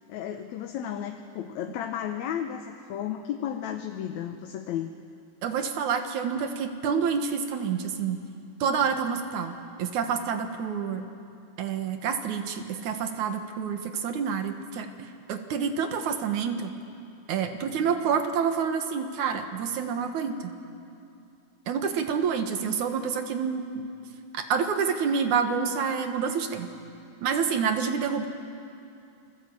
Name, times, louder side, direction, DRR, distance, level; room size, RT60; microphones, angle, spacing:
voice 1, 0.1-4.9, left 9 dB, 70° left, 5 dB, 2.1 m, -33 dB
voice 2, 5.4-8.2 8.6-11.1 11.6-14.9 15.3-16.7 17.3-20.5 21.7-23.9 24.3-26.7 27.2-28.3, right 6 dB, 75° right, 6 dB, 2.8 m, -28 dB
29.0 x 21.0 x 8.5 m, 2.6 s
omnidirectional pair, 3.6 m